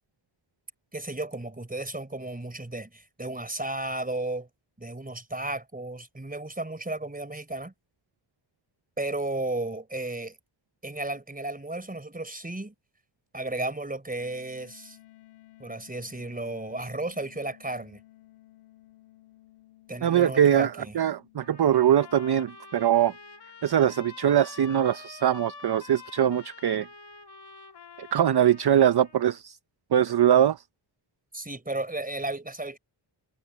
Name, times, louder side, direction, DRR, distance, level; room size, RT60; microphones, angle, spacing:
voice 1, 0.9-4.5 4.8-7.7 9.0-10.4 10.8-12.7 13.3-15.0 15.6-18.0 19.9-20.9 31.3-32.8, right 2 dB, 15° right, 4.3 m, -34 dB
sound 1, 14.2-24.9, left 16 dB, 85° left, 3.1 m, -57 dB
voice 2, 20.0-23.1 23.6-26.9 28.0-29.6 29.9-30.6, right 10 dB, 50° right, 0.7 m, -22 dB
sound 2, 21.4-29.2, left 4 dB, 55° left, 2.6 m, -47 dB
wide cardioid pair, 105°, 49 cm